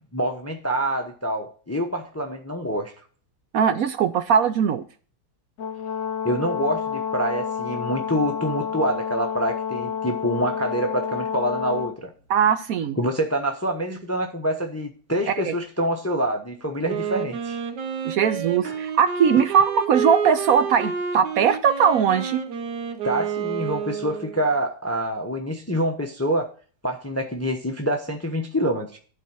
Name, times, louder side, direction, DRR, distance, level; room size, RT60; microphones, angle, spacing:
voice 1, 0.1-2.9 6.2-12.1 13.0-17.6 18.6-18.8 23.0-26.5 26.8-29.0, right 1 dB, 15° left, 4 dB, 0.6 m, -26 dB
voice 2, 3.5-4.8 12.3-13.0 15.3-15.5 18.0-22.4, right 7 dB, 70° right, 10 dB, 1.0 m, -20 dB
Brass instrument, 5.6-12.0, left 7 dB, 60° left, 0.9 m, -29 dB
Wind instrument woodwind instrument, 16.9-24.5, right 6 dB, 90° right, 1.6 m, -29 dB
11.5 x 4.3 x 6.0 m, 0.40 s
omnidirectional pair, 1.8 m